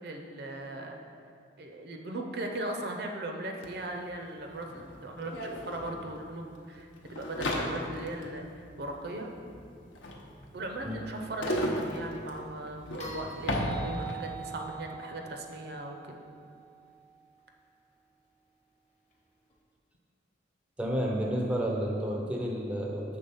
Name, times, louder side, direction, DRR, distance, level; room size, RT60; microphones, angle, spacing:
voice 1, 0.0-1.0 1.6-9.3 10.5-16.2, right 1 dB, 55° right, 3 dB, 0.6 m, -38 dB
sound 1, 3.6-3.7 3.9-14.4, equal, 80° left, 0.8 m, -36 dB
sound 2, 13.0-17.3 19.5-19.6, right 6 dB, 35° left, 0.9 m, -44 dB
voice 2, 20.8-23.2, equal, 5° right, -1 dB, 0.5 m, -31 dB
6.8 x 3.6 x 5.5 m, 2.3 s
head